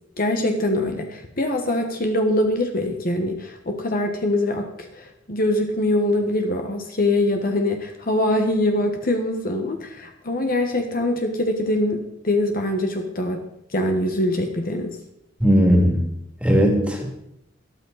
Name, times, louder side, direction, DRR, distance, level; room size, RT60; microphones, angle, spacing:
voice 1, 0.2-15.0, left 1 dB, 50° left, 4 dB, 1.4 m, -23 dB
voice 2, 15.4-16.1 16.4-17.1, equal, 5° right, 1 dB, 2.6 m, -17 dB
13.0 x 12.0 x 4.1 m, 0.81 s
head